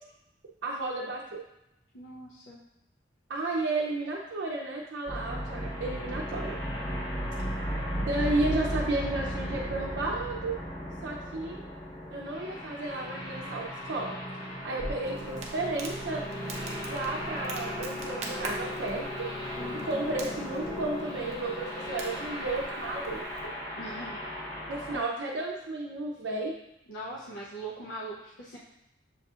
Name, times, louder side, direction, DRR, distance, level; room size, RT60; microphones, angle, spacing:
voice 1, 0.6-1.4 3.3-6.6 8.0-10.6 11.0-11.6 12.1-14.2 14.4-16.2 16.8-19.3 19.8-23.2 24.7-26.5, right 2 dB, 80° right, -3 dB, 0.5 m, -33 dB
voice 2, 1.9-2.6 19.6-20.1 23.7-24.2 24.9-25.0 26.9-28.6, right 1 dB, 80° left, -6 dB, 0.6 m, -41 dB
sound 1, 5.1-25.0, equal, 20° left, 0.8 m, -36 dB
Crackle, 14.8-23.5, right 2 dB, 35° right, 0.6 m, -44 dB
7.0 x 2.7 x 2.4 m, 0.86 s
head